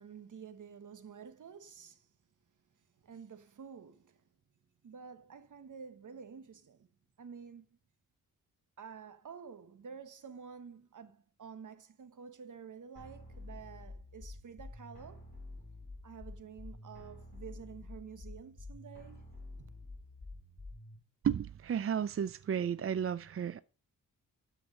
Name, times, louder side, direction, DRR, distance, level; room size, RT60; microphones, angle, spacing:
voice 1, 0.0-2.1 3.0-4.2 4.8-6.9 7.2-7.8 8.8-15.3 16.0-19.2 19.6-19.7, right 6 dB, 65° right, 1.3 m, -50 dB
sound 1, 13.0-21.0, left 2 dB, 30° left, 6.1 m, -49 dB
voice 2, 21.2-23.6, right 8 dB, 40° right, 0.5 m, -33 dB
12.5 x 4.9 x 5.3 m
cardioid pair, 85°, 34 cm